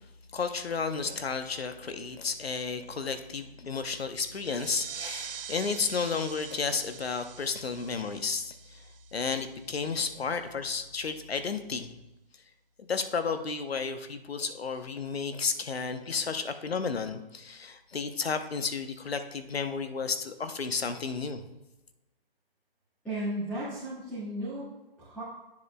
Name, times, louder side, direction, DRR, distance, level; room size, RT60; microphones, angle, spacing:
voice 1, 0.3-8.8 9.1-12.0 12.8-21.4, left 5 dB, 90° left, 9 dB, 0.8 m, -32 dB
sound 1, 4.2-9.6, right 8 dB, 65° right, 0.5 m, -44 dB
voice 2, 23.0-25.2, right 1 dB, 5° left, -13 dB, 1.9 m, -35 dB
9.9 x 7.1 x 2.2 m, 1.0 s
hypercardioid pair, 155°, 30 cm